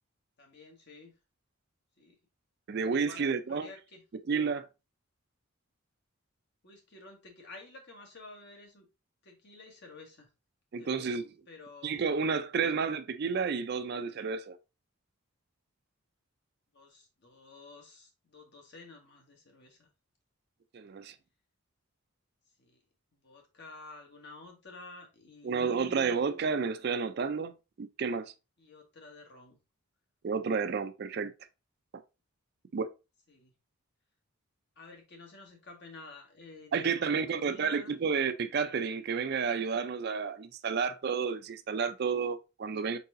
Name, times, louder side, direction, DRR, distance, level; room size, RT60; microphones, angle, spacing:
voice 1, 0.4-1.1 2.0-2.2 2.9-4.0 6.6-8.9 9.2-10.3 10.8-11.2 11.5-12.1 12.6-12.8 16.7-19.9 22.6-22.8 23.2-26.2 28.6-29.6 33.3-33.5 34.8-38.0, left 3 dB, 55° left, 1.3 m, -51 dB
voice 2, 2.7-3.7 4.3-4.7 10.7-11.3 11.8-14.6 20.7-21.1 25.4-27.5 27.8-28.3 30.2-31.3 32.7-32.9 36.7-43.0, right 5 dB, 50° right, 0.4 m, -31 dB
4.6 x 4.0 x 2.6 m
head